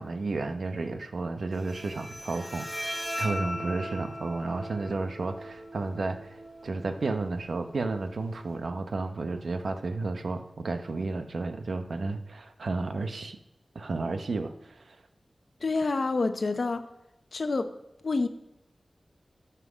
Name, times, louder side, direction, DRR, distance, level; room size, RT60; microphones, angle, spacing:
voice 1, 0.0-6.4 6.6-13.4 13.7-15.0, right 3 dB, 75° right, 0.7 m, -32 dB
Bowed string instrument, 1.5-8.5, equal, 15° right, 3.7 m, -39 dB
voice 2, 15.6-16.9 17.3-17.7 18.0-18.3, left 3 dB, 60° left, 0.8 m, -27 dB
9.5 x 5.8 x 6.2 m
wide cardioid pair, 80°, 0 cm